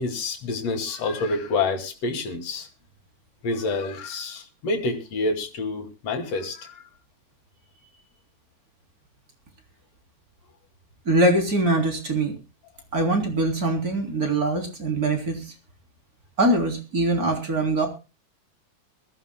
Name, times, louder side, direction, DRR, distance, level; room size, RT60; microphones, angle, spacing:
voice 1, 0.0-2.7 3.4-6.8, left 3 dB, 55° left, 6 dB, 3.4 m, -28 dB
voice 2, 11.1-12.4 12.9-15.5 16.4-17.9, right 2 dB, 25° right, 4 dB, 3.6 m, -23 dB
23.0 x 15.0 x 2.2 m, 0.31 s
omnidirectional pair, 3.7 m